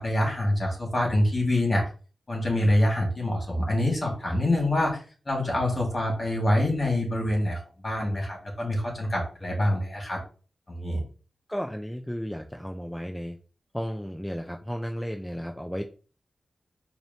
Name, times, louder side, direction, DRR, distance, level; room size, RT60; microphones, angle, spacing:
voice 1, 0.0-1.9 2.3-10.2 10.7-11.0, left 1 dB, 35° left, -1 dB, 1.9 m, -26 dB
voice 2, 11.5-13.4 13.7-15.8, equal, 5° left, 3 dB, 0.4 m, -33 dB
4.7 x 2.8 x 2.8 m, 0.37 s
wide cardioid pair, 85°, 0 cm